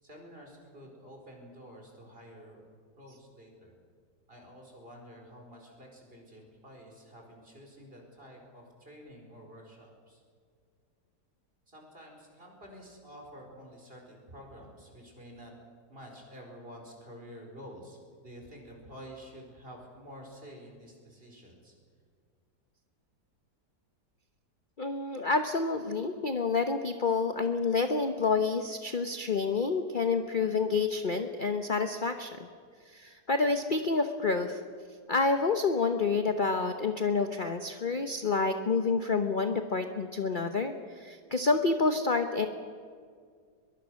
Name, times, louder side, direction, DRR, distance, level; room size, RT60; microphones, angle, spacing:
voice 1, 0.0-2.6 3.0-3.7 4.3-10.2 11.7-15.5 15.9-21.7, equal, 35° right, 1 dB, 5.1 m, -49 dB
voice 2, 24.8-32.5 32.9-34.6 35.1-42.5, left 4 dB, 35° left, 7 dB, 1.0 m, -28 dB
22.5 x 22.5 x 6.4 m, 2.1 s
omnidirectional pair, 1.8 m